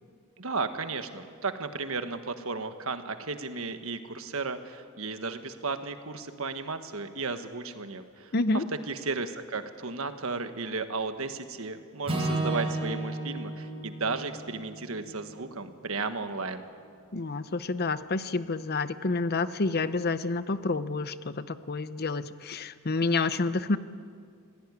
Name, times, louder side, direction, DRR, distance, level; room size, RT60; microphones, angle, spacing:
voice 1, 0.4-16.6, right 4 dB, 70° right, 8 dB, 1.5 m, -34 dB
voice 2, 8.3-8.6 17.1-23.8, left 3 dB, 45° left, 13 dB, 0.8 m, -29 dB
Acoustic guitar / Strum, 12.0-16.4, right 2 dB, 25° right, 5.2 m, -34 dB
24.5 x 17.0 x 9.9 m, 2.2 s
head